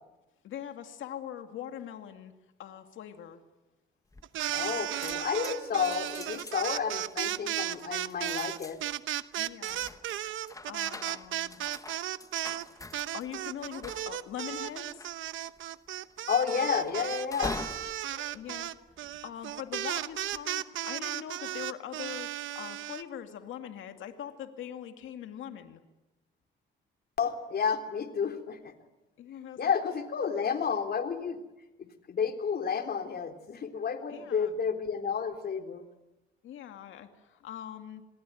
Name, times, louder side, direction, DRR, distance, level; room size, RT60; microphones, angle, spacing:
voice 1, 0.4-2.3 2.6-3.4 9.4-9.9 10.7-11.7 13.1-15.1 18.3-18.8 19.0-25.8 29.2-29.7 34.1-34.5 36.4-38.0, left 10 dB, 80° left, 7 dB, 2.3 m, -42 dB
sound 1, 4.1-4.6 4.9-19.4 20.0-20.4, left 2 dB, 15° left, 1.6 m, -45 dB
sound 2, 4.2-12.6 12.9-23.0, right 13 dB, 80° right, 1.0 m, -35 dB
voice 2, 4.5-8.8 16.3-17.6 18.1-18.3 27.2-28.7 29.6-31.4 31.8-35.8, left 6 dB, 50° left, 6 dB, 3.6 m, -31 dB
27.0 x 21.5 x 9.4 m, 0.98 s
cardioid pair, 90°, 20 cm